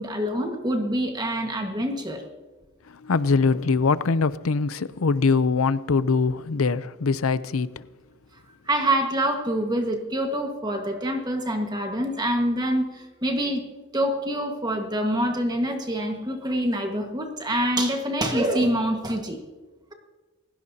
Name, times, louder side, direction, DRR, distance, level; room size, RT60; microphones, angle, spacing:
voice 1, 0.0-2.2 8.7-13.6 13.9-19.4, right 1 dB, 20° right, 1.6 m, -26 dB
voice 2, 3.0-7.7, left 4 dB, 90° left, 0.6 m, -22 dB
30.0 x 16.0 x 2.8 m
head